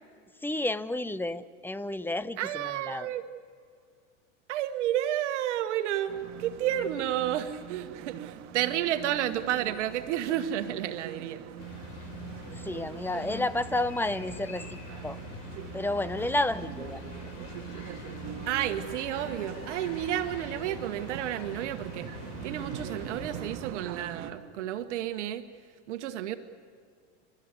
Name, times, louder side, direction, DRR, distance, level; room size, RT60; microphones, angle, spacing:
voice 1, 0.4-3.1 12.5-15.2 15.7-17.0, left 2 dB, 5° left, 14 dB, 0.6 m, -31 dB
voice 2, 2.4-3.2 4.5-11.4 18.5-22.1 22.4-25.4 25.9-26.4, right 11 dB, 75° right, 9 dB, 1.5 m, -31 dB
sound 1, 6.1-24.3, right 11 dB, 45° right, 1.7 m, -43 dB
sound 2, 11.6-23.6, left 4 dB, 55° left, 5.1 m, -44 dB
29.0 x 13.0 x 9.7 m, 2.1 s
hypercardioid pair, 110°, 36 cm